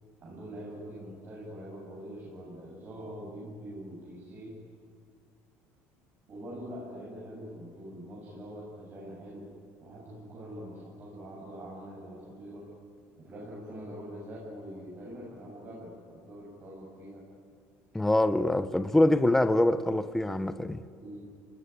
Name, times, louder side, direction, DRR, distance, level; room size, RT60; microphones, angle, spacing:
voice 1, 0.2-4.6 6.3-9.5 9.8-12.7 13.2-17.2 21.0-21.2, equal, 35° right, 8.0 m, -44 dB
voice 2, 17.9-20.8, left 1 dB, 5° left, 0.9 m, -24 dB
30.0 x 20.0 x 10.0 m
cardioid pair, 135°, 6 cm